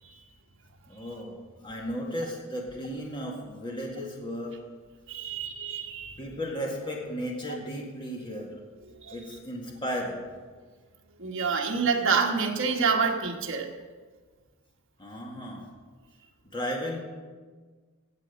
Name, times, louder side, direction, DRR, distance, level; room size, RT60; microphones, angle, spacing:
voice 1, 0.9-1.4 1.6-4.6 6.2-8.5 9.1-10.3 15.0-15.7 16.4-17.0, equal, 20° left, -1 dB, 1.8 m, -34 dB
voice 2, 5.1-6.2 9.0-9.1 11.2-13.7, right 5 dB, 60° right, 1 dB, 1.4 m, -27 dB
15.0 x 8.0 x 5.2 m, 1.5 s
head